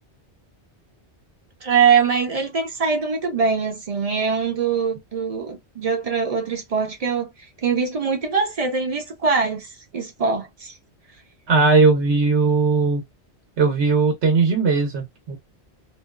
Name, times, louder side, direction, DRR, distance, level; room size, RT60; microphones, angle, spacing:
voice 1, 1.6-7.3 7.6-9.7 9.9-10.7, right 5 dB, 45° right, 0.5 m, -22 dB
voice 2, 11.5-13.0 13.6-15.4, right 4 dB, 85° right, 1.1 m, -18 dB
2.6 x 2.1 x 2.2 m
omnidirectional pair, 1.1 m